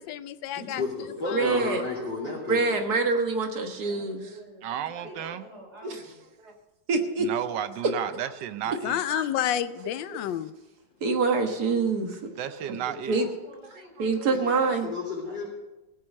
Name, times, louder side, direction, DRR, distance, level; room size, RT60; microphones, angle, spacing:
voice 1, 0.0-1.6 8.8-10.5, left 11 dB, 80° left, 14 dB, 1.4 m, -30 dB
voice 2, 0.5-0.9 1.2-2.6 14.2-15.5, left 3 dB, 65° left, -7 dB, 3.7 m, -32 dB
voice 3, 1.3-1.8 2.5-4.2 5.8-6.0 6.4-6.5 6.9-7.3 9.1-9.2 11.0-12.3 12.7-12.8 13.1-13.3 13.7-14.9, right 4 dB, 55° right, 5 dB, 1.9 m, -26 dB
voice 4, 3.8-6.3 12.3-14.8 15.2-15.5, right 1 dB, 35° right, -1 dB, 4.8 m, -49 dB
voice 5, 4.6-5.4 7.2-9.0 12.4-13.2, right 10 dB, 75° right, 12 dB, 1.3 m, -33 dB
16.5 x 8.7 x 6.4 m, 1.0 s
omnidirectional pair, 2.0 m